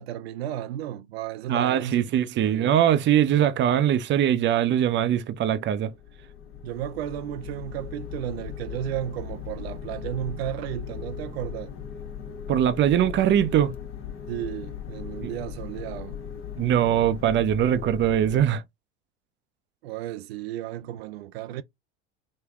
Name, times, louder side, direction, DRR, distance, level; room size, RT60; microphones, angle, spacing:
voice 1, 0.0-2.0 2.4-2.7 6.6-11.7 14.3-16.2 19.8-21.6, right 12 dB, 75° right, 0.5 m, -33 dB
voice 2, 1.5-5.9 12.5-13.7 15.2-15.3 16.6-18.6, right 10 dB, 35° right, 0.6 m, -22 dB
sound 1, 5.7-18.5, left 8 dB, 40° left, 1.1 m, -38 dB
3.6 x 2.2 x 3.5 m
hypercardioid pair, 85°, 31 cm